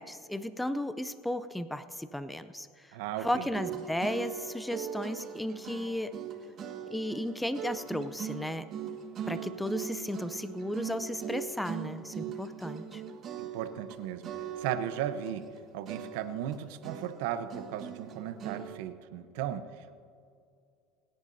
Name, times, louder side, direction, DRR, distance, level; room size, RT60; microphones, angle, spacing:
voice 1, 0.0-2.7 3.2-6.1 6.9-8.7 9.3-13.0, left 1 dB, 5° left, 12 dB, 0.5 m, -34 dB
voice 2, 2.9-3.5 13.4-14.3 14.6-15.4 15.7-19.9, right 10 dB, 80° right, 11 dB, 0.8 m, -36 dB
sound 1, 3.5-14.0 14.2-15.6 15.9-18.8, right 8 dB, 40° right, 1.4 m, -40 dB
29.0 x 10.5 x 2.7 m, 2.5 s
supercardioid pair, 135°, 0 cm